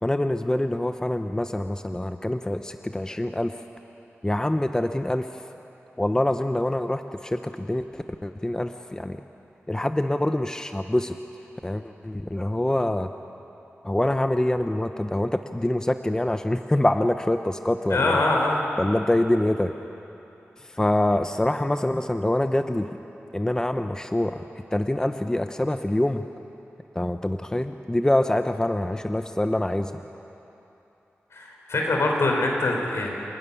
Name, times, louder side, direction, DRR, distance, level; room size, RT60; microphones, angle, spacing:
voice 1, 0.0-3.6 4.2-5.4 6.0-9.2 9.7-11.2 11.6-13.1 13.8-18.2 18.8-19.7 20.6-23.0 23.3-24.4 24.7-26.2 26.9-29.9, left 1 dB, 15° left, 8 dB, 0.7 m, -25 dB
voice 2, 17.9-18.6 31.3-33.1, left 2 dB, 75° left, 0 dB, 4.3 m, -23 dB
28.0 x 12.5 x 9.8 m, 3.0 s
wide cardioid pair, 70°, 5 cm